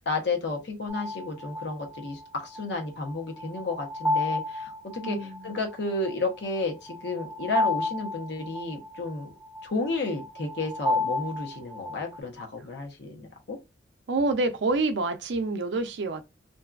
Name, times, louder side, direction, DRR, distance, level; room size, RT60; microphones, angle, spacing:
voice 1, 0.0-9.3 9.6-13.6, left 3 dB, 65° left, 0.7 m, -32 dB
sound 1, 0.9-12.2, left 2 dB, 5° right, 0.6 m, -32 dB
voice 2, 5.0-5.4 14.1-16.2, right 3 dB, 65° right, 0.5 m, -27 dB
2.6 x 2.3 x 2.3 m
head